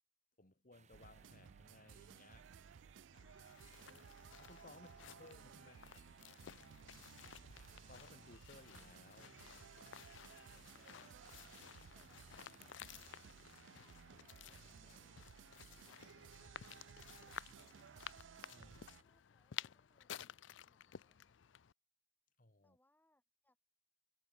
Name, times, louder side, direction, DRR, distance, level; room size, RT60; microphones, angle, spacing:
voice 1, 0.4-2.5 4.4-6.1 7.9-9.4 18.5-18.8 22.4-22.8, left 2 dB, 45° left, 2.9 m, -61 dB
sound 1, 0.7-15.1, right 4 dB, 40° right, 2.0 m, -70 dB
sound 2, 0.9-19.0, right 7 dB, 80° right, 0.4 m, -59 dB
sound 3, 3.1-21.7, left 10 dB, 80° left, 0.5 m, -55 dB
voice 2, 4.7-5.2 5.6-5.9 7.1-7.7 10.5-15.2 15.7-18.1 18.6-21.6 22.6-23.6, left 1 dB, 10° left, 7.3 m, -79 dB
head